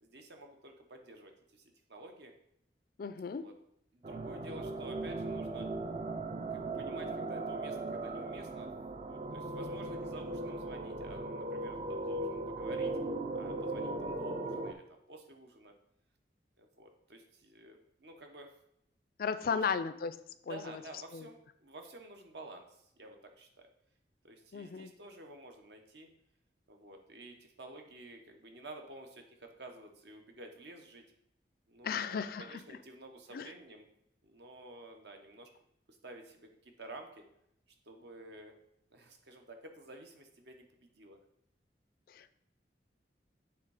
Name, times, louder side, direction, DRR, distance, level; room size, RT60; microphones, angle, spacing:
voice 1, 0.0-2.3 3.2-3.5 3.9-5.7 6.5-8.7 9.0-12.9 13.3-15.7 16.6-18.5 19.4-19.6 20.5-23.5 24.2-26.1 26.7-31.0 31.7-33.8 34.2-35.5 35.9-37.2 37.9-38.5 38.9-41.2, right 2 dB, 70° right, 4 dB, 1.1 m, -51 dB
voice 2, 3.0-3.5 19.2-20.2 20.5-20.8 21.1-21.3 24.5-24.9 31.8-32.6 33.3-33.5 42.1-42.3, left 6 dB, 55° left, 12 dB, 0.4 m, -35 dB
sound 1, 4.0-14.7, right 2 dB, 35° right, 0.5 m, -38 dB
7.9 x 3.6 x 4.9 m, 0.77 s
head